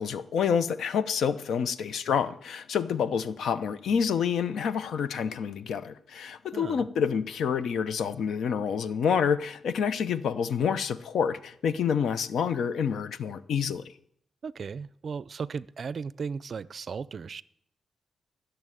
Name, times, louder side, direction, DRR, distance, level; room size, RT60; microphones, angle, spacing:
voice 1, 0.0-13.8, left 7 dB, 85° left, 14 dB, 0.7 m, -28 dB
voice 2, 6.5-6.9 14.4-17.4, right 5 dB, 50° right, 19 dB, 0.4 m, -36 dB
14.5 x 7.0 x 9.1 m, 0.69 s
cardioid pair, 110°, 0 cm